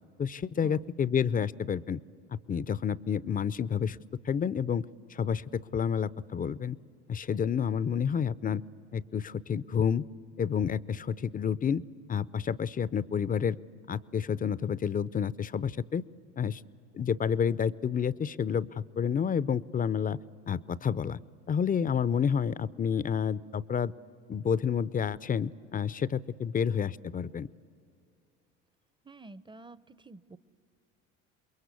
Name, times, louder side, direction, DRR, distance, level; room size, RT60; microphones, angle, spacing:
voice 1, 0.2-2.0 2.3-4.0 4.2-4.8 5.1-6.8 7.1-8.6 8.9-10.0 10.4-11.8 12.1-13.6 13.9-16.0 16.4-16.6 16.9-20.2 20.5-21.2 21.5-23.9 24.3-27.5, left 7 dB, 25° left, 20 dB, 0.6 m, -29 dB
voice 2, 29.0-30.4, right 2 dB, 15° right, 18 dB, 0.7 m, -49 dB
27.5 x 22.0 x 8.3 m, 2.4 s
hypercardioid pair, 75°, 35 cm